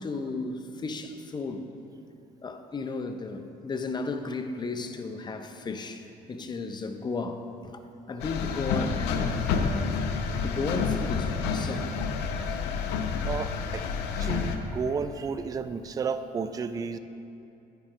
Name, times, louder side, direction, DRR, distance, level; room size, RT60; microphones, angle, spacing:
voice 1, 0.0-1.7 2.4-7.8 8.1-10.0 10.4-12.1, left 3 dB, 25° left, 7 dB, 0.6 m, -34 dB
sound 1, 8.2-14.6, left 5 dB, 85° left, 0.6 m, -29 dB
voice 2, 13.2-13.8 14.2-17.0, right 5 dB, 20° right, 10 dB, 0.3 m, -32 dB
9.6 x 9.1 x 3.0 m, 2.7 s
cardioid pair, 110°, 17 cm